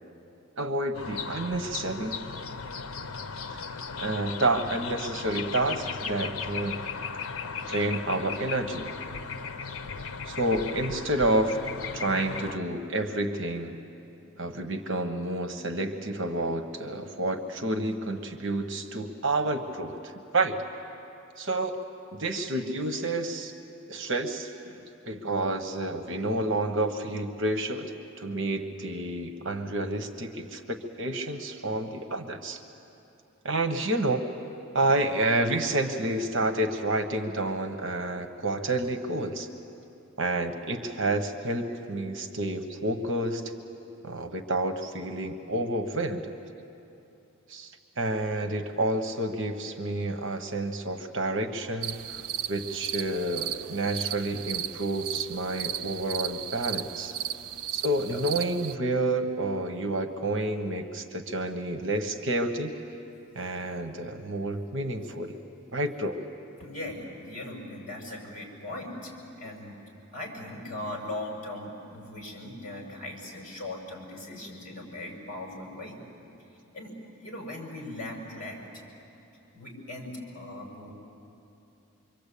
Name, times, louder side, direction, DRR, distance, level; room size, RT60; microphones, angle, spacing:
voice 1, 0.6-2.2 3.5-3.6 4.0-6.8 7.7-8.9 10.2-13.8 14.4-20.6 21.4-21.7 22.1-23.5 23.9-24.8 25.0-27.9 28.2-32.6 33.4-34.2 34.7-39.5 40.2-43.5 44.0-46.3 47.5-52.0 52.5-57.1 57.7-62.7 63.3-65.4 65.7-66.2, right 2 dB, 60° right, 6 dB, 1.3 m, -29 dB
sound 1, 0.9-12.6, left 5 dB, 80° left, 0.9 m, -36 dB
sound 2, 51.8-58.8, right 10 dB, 90° right, 0.6 m, -35 dB
voice 2, 66.6-69.8 70.1-76.0 76.7-76.9 77.2-78.9 79.5-80.9, left 1 dB, 40° left, -1 dB, 6.1 m, -39 dB
26.0 x 24.0 x 8.5 m, 2.8 s
head